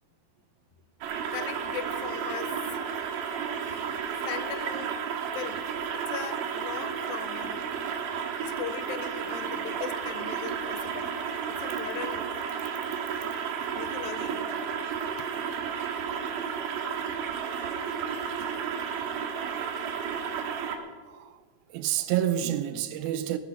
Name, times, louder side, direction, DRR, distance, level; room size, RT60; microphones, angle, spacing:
sound 1, 1.0-20.8, right 7 dB, 70° right, 2.7 m, -32 dB
voice 1, 1.3-2.6 3.6-3.8 4.2-5.0 5.3-5.6 5.9-7.7 8.4-11.1 11.5-12.3 13.7-14.4 15.2-15.3, left 10 dB, 80° left, 2.4 m, -39 dB
voice 2, 21.0-21.4 21.7-23.4, right 11 dB, 85° right, 2.6 m, -29 dB
18.0 x 10.0 x 5.3 m
omnidirectional pair, 4.2 m